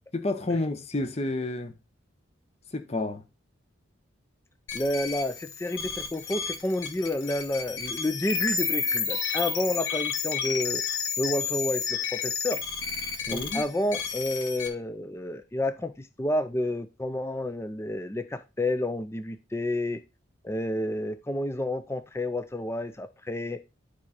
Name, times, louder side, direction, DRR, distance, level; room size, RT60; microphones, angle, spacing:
voice 1, 0.1-1.7 2.7-3.2 13.3-13.6, left 2 dB, 30° left, 0.8 m, -30 dB
sound 1, 4.7-14.7, left 6 dB, 75° left, 1.5 m, -31 dB
voice 2, 4.7-10.8 11.2-12.6 13.3-20.0 20.4-23.6, left 1 dB, 15° left, 0.4 m, -30 dB
11.0 x 4.9 x 4.2 m
head